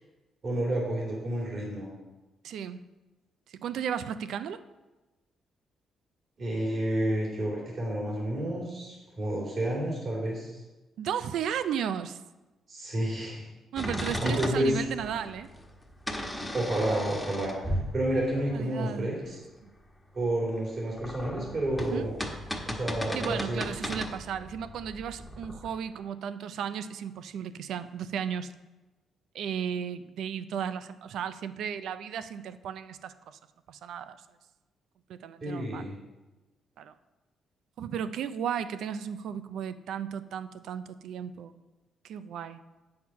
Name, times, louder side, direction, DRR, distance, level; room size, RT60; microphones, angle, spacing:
voice 1, 0.4-1.9 6.4-10.6 12.7-13.5 13.9-14.8 16.5-19.4 20.1-22.1 22.7-23.6 35.4-36.0, right 1 dB, 45° right, -3 dB, 3.0 m, -30 dB
voice 2, 2.4-2.9 3.5-4.6 11.0-12.2 13.7-15.5 18.5-19.1 19.6-19.7 21.9-22.1 23.1-28.5 29.3-33.4 33.7-34.2 35.1-35.9 36.8-36.9 37.8-41.6 42.0-42.6, right 8 dB, 75° right, 13 dB, 0.5 m, -35 dB
sound 1, 13.8-18.7 20.7-25.8, equal, 5° left, 1.2 m, -36 dB
8.5 x 6.5 x 5.7 m, 1.1 s
cardioid pair, 90°, 0 cm